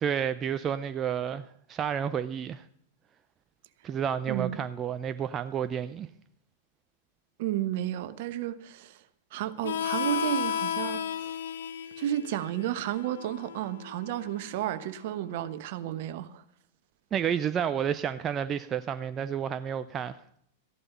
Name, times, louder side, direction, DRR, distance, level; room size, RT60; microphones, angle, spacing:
voice 1, 0.0-2.6 3.8-6.1 17.1-20.2, right 8 dB, 30° right, 0.6 m, -30 dB
voice 2, 4.3-4.6 7.4-9.0 9.3-11.3 12.0-16.4, right 12 dB, 55° right, 1.1 m, -32 dB
Harmonica, 9.6-14.9, left 9 dB, 65° left, 0.8 m, -34 dB
14.0 x 11.0 x 5.6 m
figure-of-eight pair, 95°, 0 cm